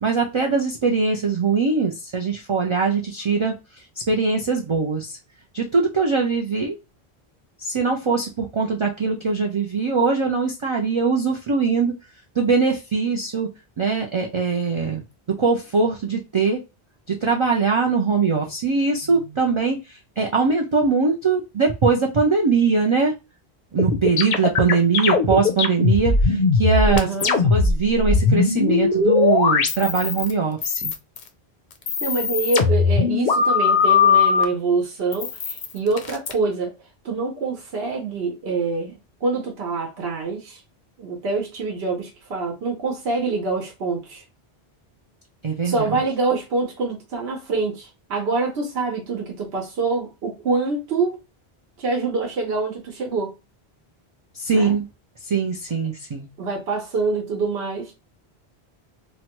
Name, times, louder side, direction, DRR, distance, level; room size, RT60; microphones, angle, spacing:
voice 1, 0.0-5.2 5.5-6.8 7.6-11.9 12.4-15.0 15.4-16.6 17.1-23.1 23.7-27.1 27.5-30.9 45.4-46.0 54.3-54.8 55.2-56.3, right 4 dB, 50° right, 0.3 m, -21 dB
sound 1, 23.8-27.7 28.0-30.3 30.6-31.3 31.7-34.4 35.1-36.3, left 5 dB, 55° left, 0.6 m, -19 dB
voice 2, 26.9-27.4 32.0-36.7 37.0-38.9 39.2-40.6 41.0-44.2 45.6-51.2 51.8-53.3 54.5-54.7 56.4-58.0, right 3 dB, 70° right, 1.0 m, -25 dB
2.9 x 2.2 x 2.9 m
omnidirectional pair, 1.1 m